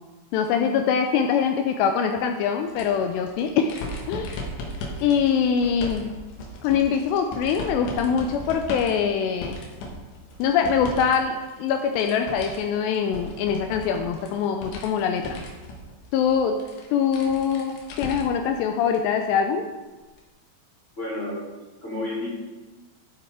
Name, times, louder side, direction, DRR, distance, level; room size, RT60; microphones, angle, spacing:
voice 1, 0.3-3.7 4.1-4.3 5.0-6.1 6.6-9.6 10.4-15.4 16.1-16.5 16.9-17.7 18.0-19.6, left 7 dB, 85° left, 4 dB, 2.4 m, -23 dB
sound 1, 2.7-11.2 11.5-18.5 18.9-19.0 20.2-20.3, left 1 dB, 70° left, 3.5 m, -37 dB
voice 2, 21.0-21.4 21.8-22.3, left 2 dB, 15° left, -8 dB, 3.3 m, -31 dB
12.0 x 8.1 x 3.7 m, 1.2 s
omnidirectional pair, 5.5 m